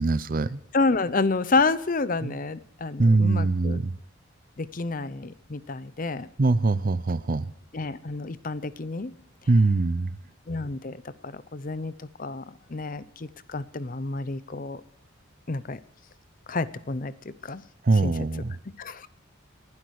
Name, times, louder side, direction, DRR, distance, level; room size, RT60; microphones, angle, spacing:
voice 1, 0.0-0.6 2.2-2.4 3.0-3.9 6.4-7.5 9.5-10.1 17.8-18.6, right 3 dB, 45° right, 0.5 m, -22 dB
voice 2, 0.7-3.8 4.6-6.3 7.7-9.1 10.5-12.4 12.7-14.8 15.5-15.8 16.5-17.6 18.0-18.1 18.8-19.1, left 3 dB, 40° left, 0.7 m, -29 dB
19.5 x 12.0 x 4.7 m
head